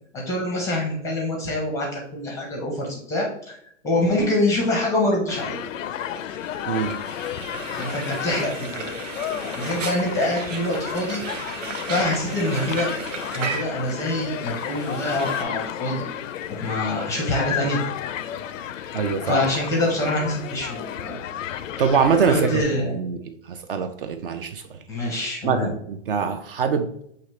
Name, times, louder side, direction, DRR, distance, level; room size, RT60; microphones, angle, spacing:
voice 1, 0.3-3.6 3.8-5.6 7.7-8.9 9.6-11.2 11.9-12.9 13.3-16.0 16.6-17.8 18.7-18.9 19.2-21.2 22.3-23.0 24.9-25.7, left 1 dB, 10° left, -1 dB, 0.5 m, -25 dB
Human group actions, 5.3-22.6, left 10 dB, 90° left, 0.5 m, -32 dB
Frying (food), 6.3-15.4, right 5 dB, 80° right, 0.9 m, -35 dB
voice 2, 18.9-19.4 21.8-23.2 23.5-24.8 25.4-26.9, right 6 dB, 50° right, 8 dB, 0.4 m, -23 dB
6.0 x 2.9 x 3.1 m, 0.70 s
hypercardioid pair, 155°, 38 cm